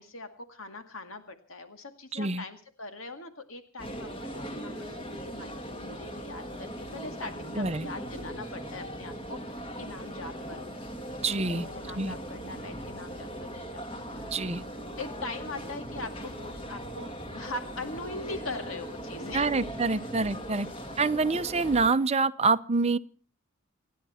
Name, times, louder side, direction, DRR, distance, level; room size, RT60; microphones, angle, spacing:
voice 1, 0.0-10.7 11.4-14.3 15.0-19.5 19.9-20.0, left 2 dB, 65° left, 2.1 m, -42 dB
voice 2, 2.1-2.4 7.6-7.9 11.2-11.7 11.9-12.1 14.3-14.6 19.3-20.7 21.0-23.0, right 3 dB, 30° right, 0.7 m, -26 dB
sound 1, 3.8-21.9, equal, 25° left, 2.3 m, -39 dB
29.0 x 10.5 x 4.3 m
head